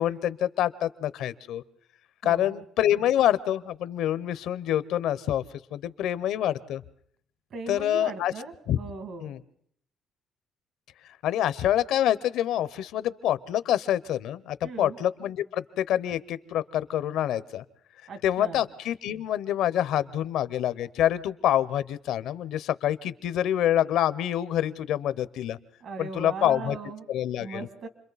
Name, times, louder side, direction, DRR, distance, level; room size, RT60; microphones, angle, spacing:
voice 1, 0.0-1.6 2.2-5.4 5.7-6.8 7.7-8.3 8.7-8.8 9.2-9.4 11.2-17.6 18.2-25.6 26.0-26.8 27.1-27.6, left 11 dB, 80° left, 16 dB, 0.8 m, -26 dB
voice 2, 2.2-2.6 7.5-9.3 14.6-15.0 18.1-18.6 25.8-27.0 27.4-27.9, right 4 dB, 60° right, 8 dB, 2.3 m, -38 dB
29.0 x 22.5 x 4.1 m, 0.67 s
cardioid pair, 120°, 0 cm